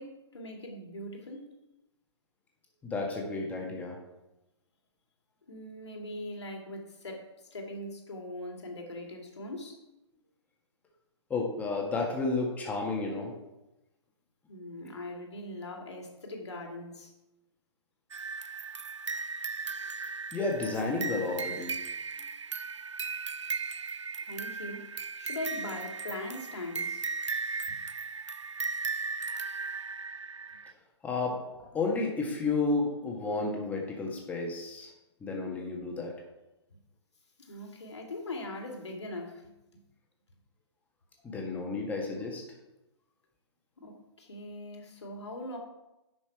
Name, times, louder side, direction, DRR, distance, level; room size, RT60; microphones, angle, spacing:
voice 1, 0.0-1.5 5.5-9.8 14.5-17.1 24.2-27.1 27.7-27.8 37.4-39.5 43.8-45.6, left 1 dB, 70° left, 1 dB, 2.4 m, -41 dB
voice 2, 2.8-4.0 11.3-13.3 20.3-21.8 31.0-31.4 31.7-34.9 35.2-36.1 41.2-42.4, left 3 dB, 10° left, -1 dB, 1.7 m, -31 dB
sound 1, 18.1-30.7, right 5 dB, 80° right, 0.4 m, -37 dB
10.5 x 6.3 x 4.7 m, 0.96 s
figure-of-eight pair, 125°, 15 cm